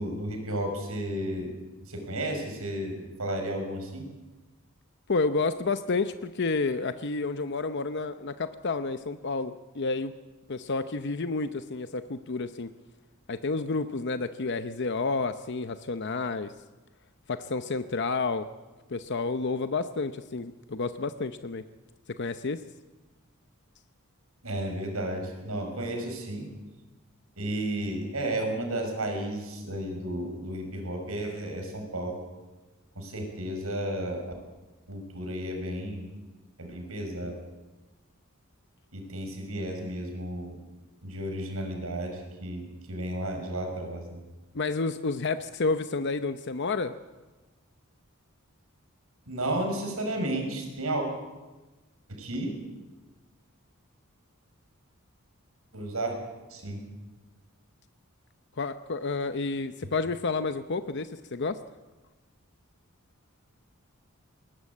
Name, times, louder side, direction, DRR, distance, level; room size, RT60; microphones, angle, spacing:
voice 1, 0.0-1.5 1.9-4.1 24.4-26.5 27.4-32.2 33.0-34.3 34.9-36.1 36.6-37.4 38.9-40.6 41.0-44.2 49.3-51.1 52.1-52.5 55.7-56.2 56.5-56.8, right 1 dB, 80° right, 4 dB, 5.9 m, -33 dB
voice 2, 5.1-10.1 10.5-12.7 13.3-16.5 17.3-18.5 18.9-21.6 22.2-22.6 44.5-46.9 58.6-61.6, left 3 dB, 55° left, 10 dB, 0.7 m, -30 dB
21.0 x 19.0 x 8.5 m, 1.2 s
head